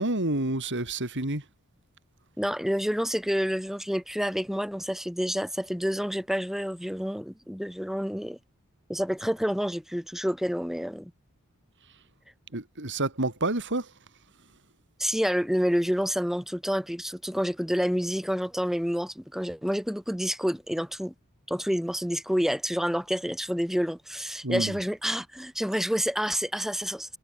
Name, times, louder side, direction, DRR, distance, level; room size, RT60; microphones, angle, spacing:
voice 1, 0.0-1.4 12.5-13.9 24.4-24.7, right 2 dB, 55° right, 4.8 m, -28 dB
voice 2, 2.4-8.4 8.9-11.1 15.0-21.1 21.5-27.2, equal, ahead, 6.1 m, -28 dB
head